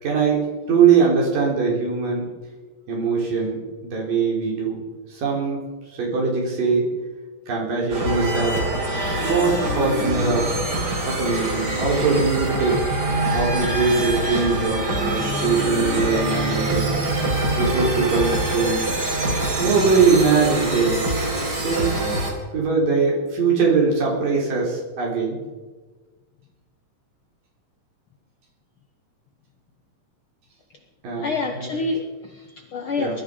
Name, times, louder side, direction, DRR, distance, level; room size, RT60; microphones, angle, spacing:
voice 1, 0.0-2.3 2.9-4.8 5.1-5.6 6.0-6.9 7.5-10.7 11.1-12.8 13.3-17.0 17.6-18.8 19.6-21.1 21.6-21.9 22.5-25.4 31.0-31.8 33.0-33.2, right 5 dB, 85° right, -2 dB, 5.2 m, -21 dB
sound 1, 7.9-22.3, right 1 dB, 35° right, 4.3 m, -24 dB
voice 2, 31.2-33.2, left 3 dB, 70° left, 3 dB, 1.2 m, -28 dB
20.0 x 12.5 x 5.0 m, 1.3 s
omnidirectional pair, 3.8 m